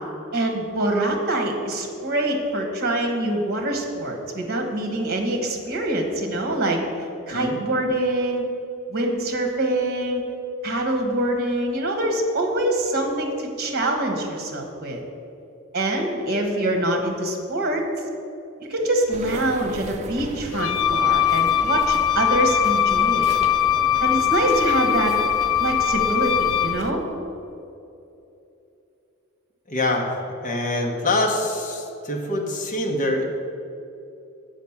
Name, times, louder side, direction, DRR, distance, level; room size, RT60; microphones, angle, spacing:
voice 1, 0.3-6.8 7.3-8.4 8.9-10.2 10.6-15.0 15.7-17.8 18.6-23.3 24.0-25.2 25.6-27.0, right 1 dB, 50° right, 3 dB, 1.3 m, -24 dB
sound 1, 19.1-26.9, right 3 dB, 30° right, 0.4 m, -37 dB
Wind instrument woodwind instrument, 20.5-26.8, left 9 dB, 90° left, 0.4 m, -21 dB
voice 2, 29.7-33.2, left 1 dB, 35° left, 1 dB, 1.0 m, -25 dB
7.3 x 5.1 x 7.1 m, 2.7 s
head